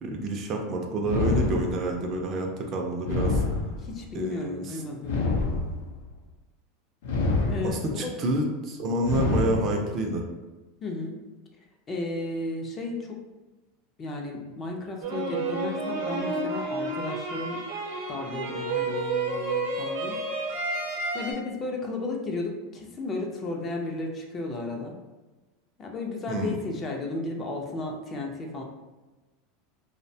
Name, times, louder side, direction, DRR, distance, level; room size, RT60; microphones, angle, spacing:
voice 1, 0.0-3.4 4.1-4.8 7.6-10.2 26.3-26.5, right 2 dB, 40° right, 2 dB, 0.4 m, -28 dB
sound 1, 1.0-2.1 3.0-4.1 5.0-6.1 7.0-8.1 9.0-10.1, left 3 dB, 85° left, 0.5 m, -27 dB
voice 2, 3.8-5.5 7.5-8.1 10.8-11.2 11.9-13.2 14.0-17.6 18.1-20.2 21.1-24.9 25.8-28.6, left 2 dB, 25° left, 1 dB, 0.4 m, -34 dB
sound 2, 15.0-21.3, right 3 dB, 85° right, 0.6 m, -30 dB
2.6 x 2.1 x 2.6 m, 1.1 s
supercardioid pair, 135°, 0 cm